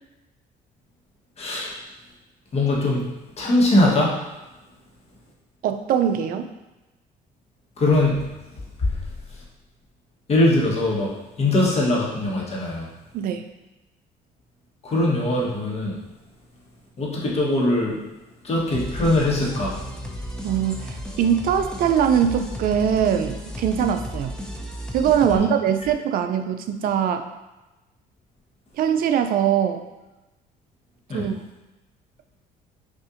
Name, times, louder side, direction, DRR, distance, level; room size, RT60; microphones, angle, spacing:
voice 1, 1.4-1.7 2.5-3.1 3.4-4.1 7.8-8.2 8.8-8.9 10.3-11.1 11.4-12.9 14.8-16.0 17.0-18.0 18.4-19.8 25.3-25.5 31.1-31.3, left 1 dB, 40° left, -3 dB, 1.1 m, -21 dB
voice 2, 5.6-6.5 13.1-13.4 20.4-24.4 24.9-27.3 28.8-29.8 31.1-31.3, right 8 dB, 60° right, 8 dB, 0.4 m, -22 dB
sound 1, 18.7-25.4, equal, 5° left, 0.4 m, -34 dB
5.4 x 2.5 x 2.5 m, 1.1 s
cardioid pair, 110°, 17 cm